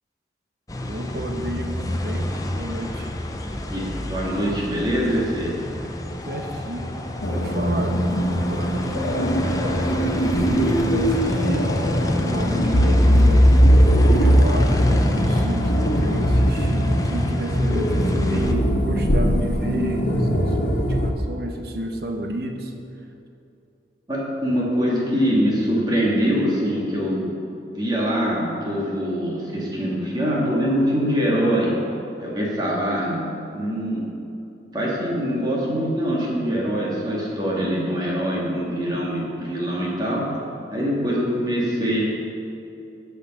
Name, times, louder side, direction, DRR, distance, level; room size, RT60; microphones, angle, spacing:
sound 1, 0.7-18.5, left 1 dB, 20° left, 0.6 m, -27 dB
voice 1, 0.9-3.1 6.0-7.0 7.3-11.7 12.2-13.5 14.1-22.7, right 1 dB, 55° right, 3 dB, 1.1 m, -31 dB
voice 2, 3.7-5.5 24.1-27.3 27.7-31.7 32.2-33.2 33.5-34.1 34.7-40.2 40.7-42.0, equal, 25° right, -5 dB, 2.4 m, -23 dB
sound 2, 7.2-21.1, equal, 85° left, 1.3 m, -20 dB
15.5 x 5.8 x 5.7 m, 2.8 s
head